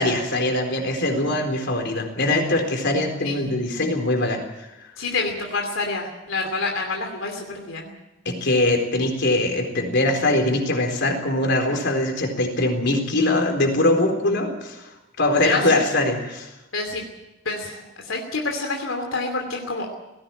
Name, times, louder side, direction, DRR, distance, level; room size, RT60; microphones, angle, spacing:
voice 1, 0.0-4.4 8.3-14.9 15.2-16.5, left 2 dB, 60° left, 4 dB, 4.0 m, -22 dB
voice 2, 3.2-3.6 5.0-7.9 15.4-15.6 16.7-17.0 17.4-19.9, left 3 dB, 90° left, 2 dB, 2.8 m, -27 dB
18.5 x 17.0 x 9.0 m, 1.0 s
head